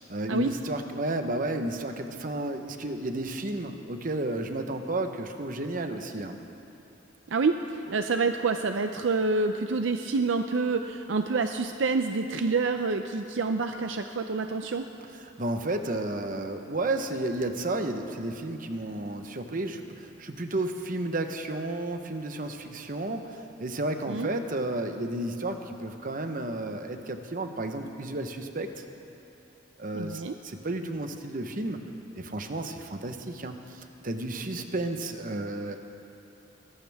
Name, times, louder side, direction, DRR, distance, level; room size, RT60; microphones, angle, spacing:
voice 1, 0.0-6.4 15.2-28.8 29.8-31.8 32.1-35.8, right 2 dB, 45° right, 6 dB, 1.0 m, -32 dB
voice 2, 7.3-14.9 24.1-24.3 29.9-30.3, right 4 dB, 70° right, 7 dB, 0.5 m, -27 dB
22.5 x 18.0 x 3.6 m, 2.8 s
head